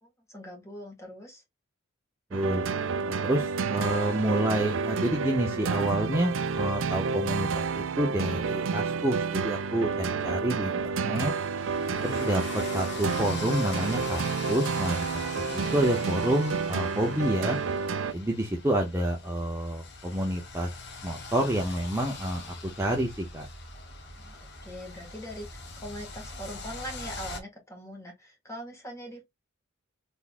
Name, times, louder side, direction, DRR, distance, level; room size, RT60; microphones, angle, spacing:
voice 1, 0.0-1.4 24.2-29.2, equal, 15° left, 1.8 m, -42 dB
voice 2, 2.3-2.6 3.1-10.7 11.0-11.3 12.0-15.2 15.5-17.6 18.1-20.7 21.0-23.5, right 1 dB, 15° right, 0.8 m, -28 dB
sound 1, 2.3-18.1, right 5 dB, 65° right, 0.4 m, -30 dB
sound 2, 11.6-27.4, left 3 dB, 55° left, 1.1 m, -42 dB
3.9 x 3.5 x 2.4 m
head